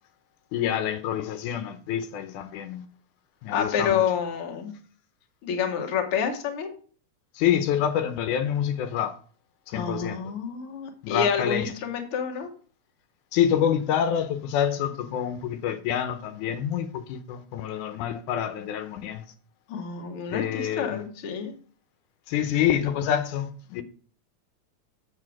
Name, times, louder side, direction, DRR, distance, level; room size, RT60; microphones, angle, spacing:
voice 1, 0.5-2.9 3.4-4.0 7.4-9.1 9.7-10.2 11.0-11.7 13.3-19.3 20.3-21.0 22.3-23.8, left 9 dB, 90° left, 2.3 m, -27 dB
voice 2, 3.5-4.8 5.4-6.7 9.7-12.5 19.7-21.6, left 7 dB, 55° left, 1.9 m, -28 dB
7.8 x 7.0 x 4.8 m
omnidirectional pair, 3.5 m